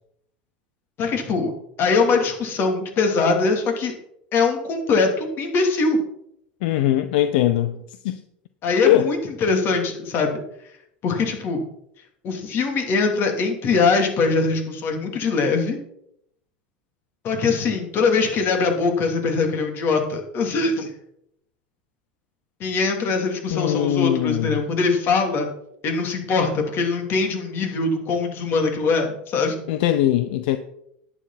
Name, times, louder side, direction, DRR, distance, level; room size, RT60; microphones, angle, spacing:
voice 1, 1.0-1.5 1.8-3.9 4.3-6.0 8.6-10.4 11.0-11.6 12.2-15.8 17.2-20.9 22.6-25.5 25.8-29.6, left 4 dB, 45° left, 3.2 m, -22 dB
voice 2, 6.6-8.2 8.9-9.1 23.5-24.6 29.7-30.6, left 13 dB, 70° left, 0.7 m, -21 dB
11.0 x 9.9 x 4.2 m
supercardioid pair, 105°, 5 cm